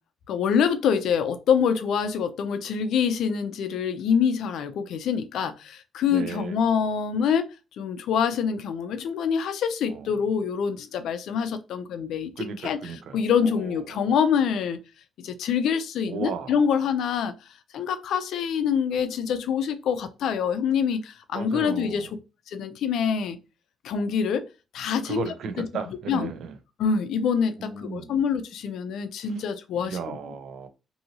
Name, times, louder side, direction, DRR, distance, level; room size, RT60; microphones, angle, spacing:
voice 1, 0.3-7.5 7.8-14.8 15.2-17.3 17.7-22.1 22.5-23.4 23.8-24.5 24.7-25.3 25.6-25.7 26.1-26.3 26.8-30.2, left 7 dB, 75° left, 0.4 m, -25 dB
voice 2, 6.1-6.5 9.9-10.1 12.4-14.1 16.1-16.5 21.3-22.1 25.0-26.5 27.6-28.2 29.8-30.7, right 6 dB, 70° right, 0.5 m, -35 dB
2.6 x 2.6 x 2.8 m
cardioid pair, 90°, 0 cm